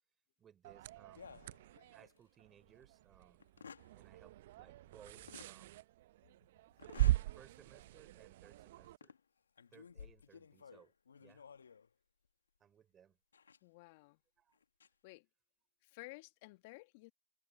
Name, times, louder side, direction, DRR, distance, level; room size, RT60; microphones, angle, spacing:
voice 1, 0.4-1.6 1.9-3.4 3.9-5.8 7.3-9.1 9.7-10.9 11.2-11.4 12.6-13.2 14.4-14.6, right 8 dB, 15° right, 4.3 m, -63 dB
sound 1, 0.6-9.0, right 15 dB, 45° right, 0.6 m, -40 dB
sound 2, 1.1-2.2 2.7-2.8 3.4-3.9 5.3-5.5 6.8-7.3 7.8-7.9 8.8-9.2 9.6-11.9 13.3-13.6 14.5-14.9, left 6 dB, 70° left, 1.6 m, -55 dB
voice 2, 13.6-14.2 15.0-15.3 15.8-17.1, left 24 dB, 40° left, 1.6 m, -54 dB
hypercardioid pair, 130°, 0 cm